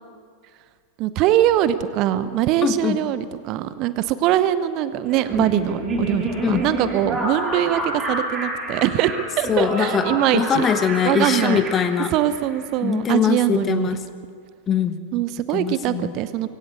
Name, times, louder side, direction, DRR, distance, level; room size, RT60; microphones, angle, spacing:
voice 1, 1.0-10.7 11.0-11.6 12.1-13.9 15.1-16.5, right 12 dB, 40° right, 14 dB, 0.9 m, -22 dB
voice 2, 2.6-3.0 6.4-6.6 9.5-10.0 10.3-12.1 12.8-14.0 14.7-15.0 15.5-16.1, left 8 dB, 25° left, 10 dB, 1.3 m, -22 dB
Laughter, 5.1-12.6, right 1 dB, 25° right, 8.0 m, -28 dB
23.0 x 17.0 x 8.3 m, 2.1 s
figure-of-eight pair, 90°, 0 cm